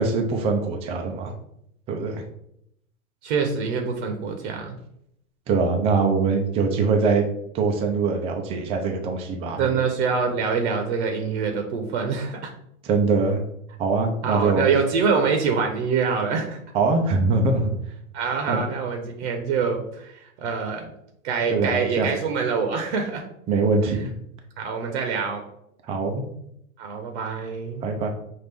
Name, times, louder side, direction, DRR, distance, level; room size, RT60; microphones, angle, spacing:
voice 1, 0.0-1.3 1.9-2.2 5.5-7.3 7.5-9.7 12.8-13.5 13.8-14.7 16.7-17.7 18.5-18.6 21.5-22.1 23.5-24.1 25.9-26.2 27.8-28.1, right 4 dB, 15° right, 3 dB, 0.4 m, -23 dB
voice 2, 3.2-4.8 9.6-12.5 14.2-16.6 18.1-20.9 21.2-23.2 23.8-24.1 24.6-25.4 26.8-27.8, right 5 dB, 55° right, 4 dB, 0.8 m, -25 dB
5.9 x 2.6 x 3.4 m, 0.75 s
hypercardioid pair, 120°, 41 cm